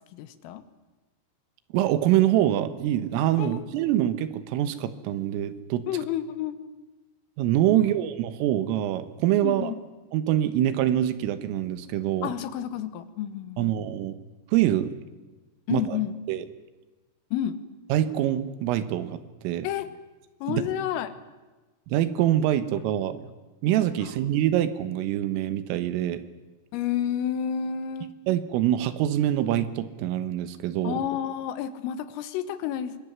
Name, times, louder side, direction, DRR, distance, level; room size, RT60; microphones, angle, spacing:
voice 1, 0.1-0.6 3.4-3.6 5.9-6.7 7.7-8.0 9.4-9.8 12.2-13.7 15.7-16.1 17.3-17.6 19.6-19.9 20.4-21.1 24.0-24.1 26.7-28.2 30.8-33.0, left 9 dB, 80° left, 12 dB, 3.9 m, -30 dB
voice 2, 1.7-5.9 7.4-9.7 10.1-12.3 13.6-14.1 14.5-14.9 15.7-16.0 16.3-16.5 17.9-19.2 19.4-19.7 20.5-20.6 21.9-23.3 23.6-26.2 28.3-31.0, right 12 dB, 80° right, 12 dB, 3.7 m, -25 dB
25.0 x 20.0 x 9.5 m, 1.2 s
omnidirectional pair, 6.0 m